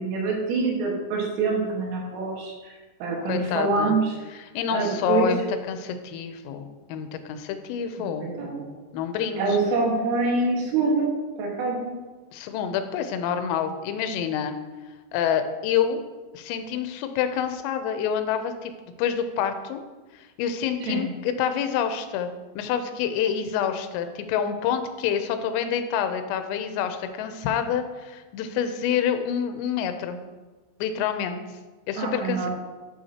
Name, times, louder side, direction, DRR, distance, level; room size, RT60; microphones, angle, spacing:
voice 1, 0.0-4.2 4.7-5.3 8.0-8.1 8.3-8.7 9.4-11.1 11.4-11.9 20.8-21.1 32.0-32.5, right 3 dB, 80° right, -2 dB, 4.2 m, -25 dB
voice 2, 3.3-4.0 4.3-8.3 8.9-9.6 12.3-14.5 15.1-16.0 16.3-18.7 19.0-19.8 20.4-22.3 22.6-30.2 30.8-31.4 31.9-32.5, left 8 dB, 90° left, 8 dB, 3.4 m, -27 dB
11.5 x 7.2 x 2.9 m, 1.2 s
omnidirectional pair, 5.8 m